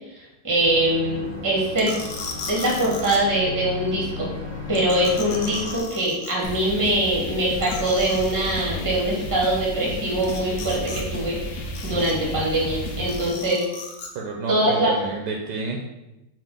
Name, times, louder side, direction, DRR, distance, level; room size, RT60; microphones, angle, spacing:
voice 1, 0.4-1.9 2.5-4.4 4.7-13.6 14.5-14.9, right 1 dB, 15° right, -4 dB, 0.7 m, -23 dB
sound 1, 0.6-5.8, left 2 dB, 30° left, 0.5 m, -34 dB
sound 2, 1.8-3.2 4.7-6.6 6.9-7.0 7.2-7.3 7.6-8.6 10.2-11.0 11.3-12.3 13.1-14.1, left 4 dB, 85° left, 1.4 m, -37 dB
sound 3, 6.4-13.3, equal, 65° left, 0.9 m, -33 dB
voice 2, 14.1-15.8, right 4 dB, 80° right, 0 dB, 1.2 m, -29 dB
5.0 x 2.5 x 3.6 m, 0.95 s
omnidirectional pair, 1.9 m